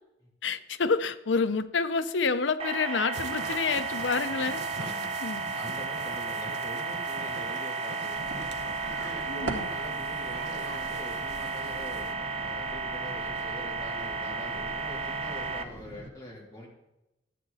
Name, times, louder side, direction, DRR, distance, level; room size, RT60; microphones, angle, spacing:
voice 1, 0.4-4.6 5.2-5.4 9.3-9.7, left 4 dB, 85° left, 12 dB, 0.6 m, -28 dB
sound 1, 2.6-15.6, right 4 dB, 30° right, 0.8 m, -33 dB
sound 2, 3.1-12.1, right 4 dB, 65° right, 0.9 m, -44 dB
voice 2, 4.7-5.2 5.5-8.5 8.9-16.7, equal, 20° left, -4 dB, 3.3 m, -44 dB
sound 3, 8.1-16.1, right 2 dB, 80° right, 2.0 m, -43 dB
12.5 x 8.6 x 4.1 m, 0.93 s
head